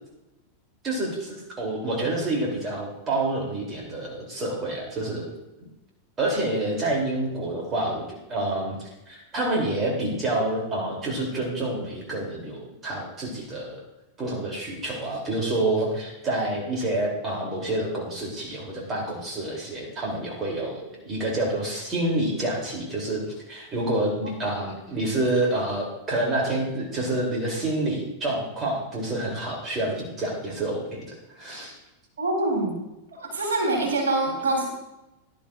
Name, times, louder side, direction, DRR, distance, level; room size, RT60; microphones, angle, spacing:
voice 1, 0.8-5.3 6.2-13.8 14.2-23.2 23.5-31.7, right 2 dB, 25° right, -2 dB, 3.1 m, -28 dB
voice 2, 32.2-32.8 33.1-34.7, right 2 dB, 65° right, -2 dB, 3.6 m, -25 dB
17.0 x 11.0 x 2.5 m, 0.96 s
figure-of-eight pair, 90°, 0 cm